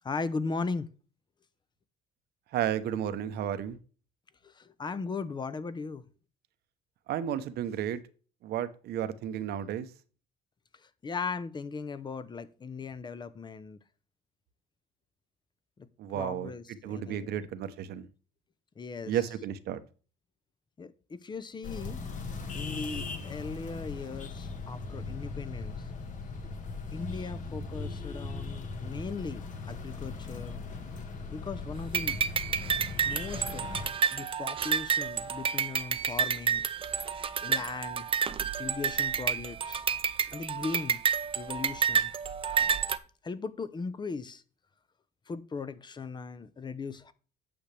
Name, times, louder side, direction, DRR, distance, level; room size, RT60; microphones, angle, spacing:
voice 1, 0.0-0.9 4.4-6.1 11.0-13.8 15.8-15.9 16.1-17.4 18.8-19.2 20.8-22.0 22.5-25.8 26.9-30.6 31.3-32.2 33.0-33.7 34.1-36.6 37.4-38.1 38.6-39.8 40.3-41.0 41.4-42.1 42.6-42.8 43.2-44.4 45.3-47.1, left 4 dB, 25° left, 0.8 m, -38 dB
voice 2, 2.5-3.8 7.1-8.0 8.4-9.9 16.0-16.5 16.8-18.1 19.1-19.8, right 10 dB, 70° right, 0.9 m, -32 dB
sound 1, 21.6-33.9, left 4 dB, 50° left, 1.6 m, -39 dB
sound 2, 31.9-43.0, right 7 dB, 30° right, 0.6 m, -30 dB
8.9 x 6.9 x 3.4 m
cardioid pair, 110°, 17 cm